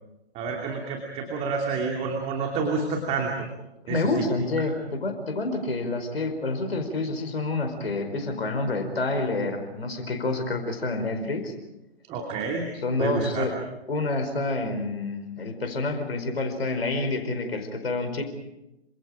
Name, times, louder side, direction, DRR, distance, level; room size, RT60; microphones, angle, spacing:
voice 1, 0.3-3.3 3.9-4.2 12.1-12.6 13.0-13.5, right 4 dB, 20° right, 1 dB, 2.7 m, -29 dB
voice 2, 3.8-11.5 12.8-13.5 13.9-18.2, left 2 dB, 65° left, 7 dB, 4.9 m, -28 dB
28.0 x 26.5 x 5.1 m, 0.92 s
figure-of-eight pair, 130°, 33 cm